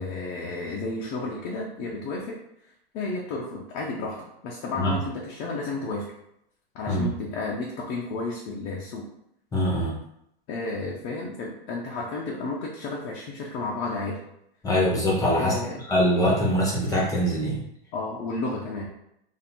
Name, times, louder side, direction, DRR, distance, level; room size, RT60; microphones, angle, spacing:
voice 1, 0.0-2.4 2.9-6.1 6.7-9.1 10.5-14.2 15.4-15.8 17.9-18.9, left 3 dB, 30° left, -3 dB, 0.6 m, -32 dB
voice 2, 9.5-9.9 14.6-15.5 15.9-17.6, equal, 10° left, -4 dB, 0.9 m, -23 dB
2.7 x 2.6 x 4.2 m, 0.77 s
hypercardioid pair, 130°, 31 cm